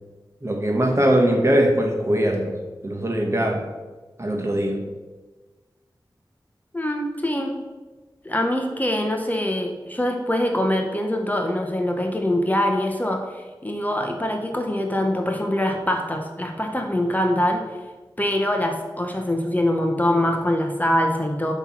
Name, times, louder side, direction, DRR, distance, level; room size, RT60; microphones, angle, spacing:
voice 1, 0.4-2.6 2.8-3.6 4.2-4.8, right 1 dB, 35° right, 2 dB, 1.1 m, -21 dB
voice 2, 6.7-7.5 8.2-17.8 18.2-21.5, left 1 dB, 20° left, 2 dB, 0.8 m, -24 dB
7.8 x 3.1 x 5.8 m, 1.3 s
wide cardioid pair, 50°, 9 cm